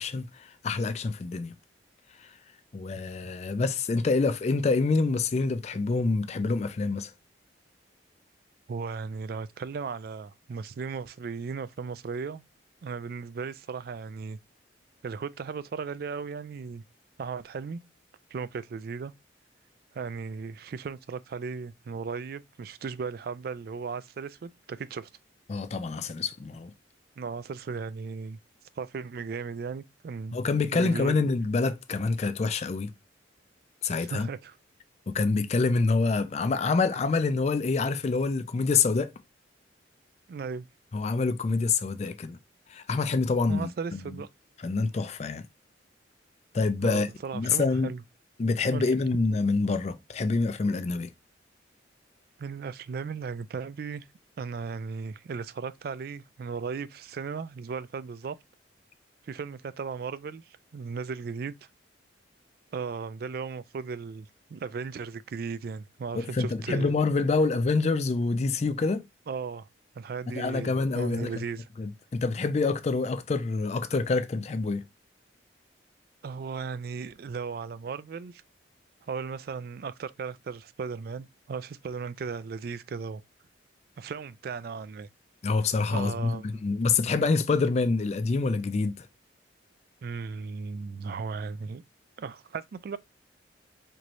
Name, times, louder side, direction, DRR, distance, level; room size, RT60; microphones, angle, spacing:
voice 1, 0.0-1.5 2.2-2.4 2.7-7.1 25.5-26.7 30.3-32.9 33.8-34.3 35.1-39.1 40.9-42.4 42.7-44.2 44.6-45.5 46.5-47.1 47.3-47.9 48.4-51.1 66.1-69.0 70.4-71.3 71.8-74.8 85.4-89.1, left 4 dB, 35° left, 0.3 m, -26 dB
voice 2, 8.7-12.4 12.8-14.4 15.0-16.8 17.2-17.8 18.3-19.1 19.9-25.1 27.2-28.4 28.8-30.4 30.7-31.2 34.0-34.6 40.3-40.7 43.5-44.3 46.8-48.0 48.7-48.9 52.4-54.1 54.4-58.4 59.2-61.5 62.7-66.9 69.3-69.7 70.0-71.7 76.2-78.4 79.0-83.2 84.0-85.1 85.9-86.6 90.0-91.8 92.2-93.0, right 5 dB, 55° right, 0.3 m, -36 dB
4.4 x 3.0 x 2.5 m
head